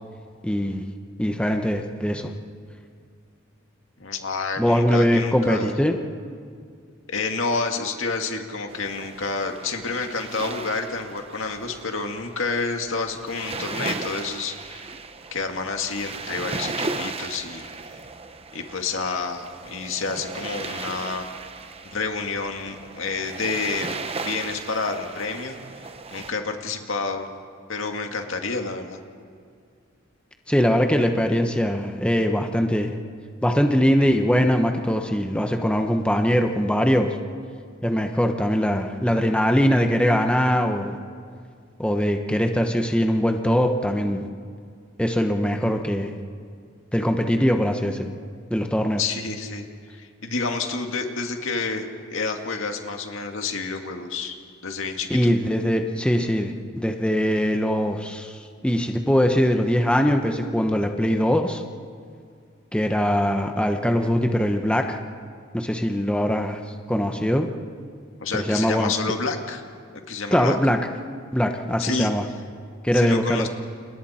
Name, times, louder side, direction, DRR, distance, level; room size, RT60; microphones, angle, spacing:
voice 1, 0.4-0.8 1.2-2.3 4.6-6.0 30.5-32.9 33.4-37.1 37.8-41.0 41.8-44.3 45.0-46.1 46.9-48.1 48.5-49.0 55.1-58.3 58.6-61.6 62.7-65.0 65.5-66.6 66.9-67.5 68.3-68.9 70.3-70.8 71.3-72.2 72.8-73.5, equal, 5° left, 4 dB, 1.1 m, -21 dB
voice 2, 4.0-5.7 7.1-14.9 15.3-17.7 18.5-21.3 21.9-24.0 24.2-27.3 27.7-29.0 49.0-51.9 52.1-54.4 54.6-55.3 68.2-69.6 69.9-70.6 71.8-72.1 72.9-73.5, left 4 dB, 70° left, 4 dB, 2.1 m, -29 dB
sound 1, 8.7-26.3, right 3 dB, 30° right, 1.0 m, -36 dB
30.0 x 29.0 x 4.4 m, 2.1 s
head